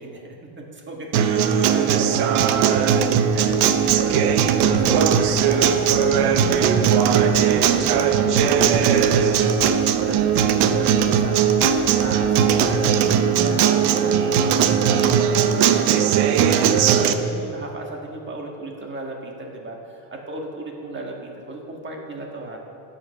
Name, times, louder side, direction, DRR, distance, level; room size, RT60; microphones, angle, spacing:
voice 1, 0.0-6.7 6.9-8.8 9.2-11.7 12.0-12.9 13.2-14.4 14.9-15.8 16.1-22.6, right 2 dB, 25° right, 0 dB, 1.7 m, -35 dB
Acoustic guitar, 1.1-17.1, right 8 dB, 60° right, 0.9 m, -18 dB
sound 1, 3.3-12.8, left 4 dB, 40° left, 1.0 m, -38 dB
16.0 x 5.6 x 6.4 m, 2.8 s
cardioid pair, 130°, 45 cm